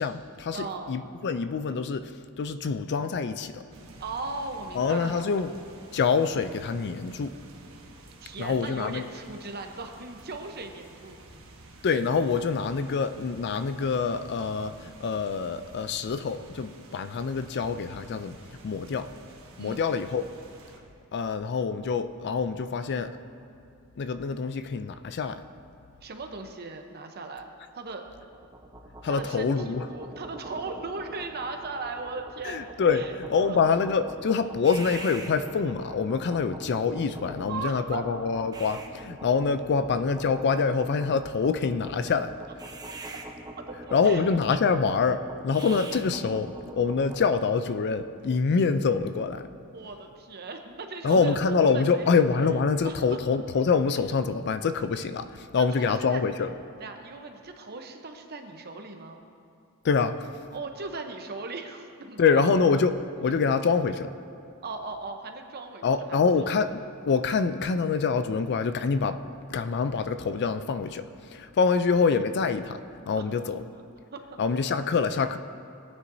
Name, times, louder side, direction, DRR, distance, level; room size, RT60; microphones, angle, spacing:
voice 1, 0.0-2.1 2.4-3.6 4.8-5.5 5.9-7.3 8.4-9.0 11.8-18.4 18.6-19.1 19.6-20.3 21.1-23.1 24.0-25.4 29.0-29.8 32.4-33.0 33.3-42.3 43.9-49.4 51.0-56.5 59.8-60.2 62.2-64.1 65.8-69.2 69.5-71.0 71.3-72.8 73.1-73.6 74.4-75.4, left 5 dB, 50° left, 11 dB, 0.4 m, -25 dB
voice 2, 0.5-0.9 4.0-5.6 8.2-11.2 19.6-20.0 26.0-27.5 27.7-28.0 29.1-32.6 32.9-33.1 33.4-33.8 37.5-38.1 43.6-44.3 49.7-52.1 52.8-53.2 55.5-56.2 56.8-59.2 60.5-62.4 63.4-63.5 64.6-66.2 73.2-73.3 73.7-73.8 74.1-74.2, right 3 dB, 45° right, 5 dB, 0.8 m, -38 dB
sound 1, 3.7-20.8, right 2 dB, 65° right, 1.3 m, -51 dB
sound 2, 28.2-47.4, right 2 dB, 20° right, 0.6 m, -43 dB
17.5 x 9.5 x 2.7 m, 2.4 s
head